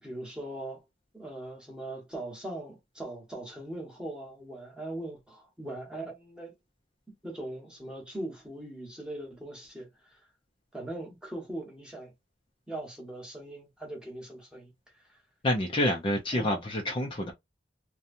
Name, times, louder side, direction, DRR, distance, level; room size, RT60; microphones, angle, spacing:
voice 1, 0.0-0.8 1.1-6.5 7.1-9.9 10.7-12.1 12.7-14.7 16.3-16.6, right 1 dB, 5° right, 1.1 m, -40 dB
voice 2, 15.4-17.3, left 1 dB, 30° left, 0.5 m, -28 dB
2.8 x 2.2 x 2.5 m
head